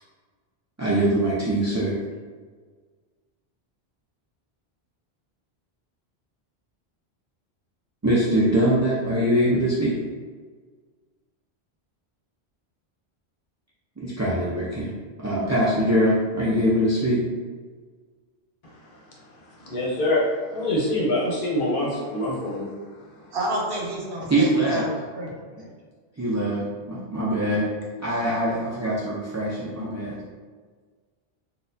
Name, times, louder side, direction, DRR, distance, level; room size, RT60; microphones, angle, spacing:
voice 1, 0.8-2.0 8.0-10.0 14.0-17.3 24.3-24.9 26.2-26.6 26.9-27.7 28.0-30.2, right 1 dB, 30° right, -8 dB, 0.3 m, -23 dB
voice 2, 19.7-20.2 20.5-22.6, left 1 dB, 60° left, -4 dB, 0.9 m, -24 dB
voice 3, 23.3-25.7, right 1 dB, 65° right, -3 dB, 1.0 m, -30 dB
4.1 x 2.3 x 2.6 m, 1.5 s
omnidirectional pair, 1.1 m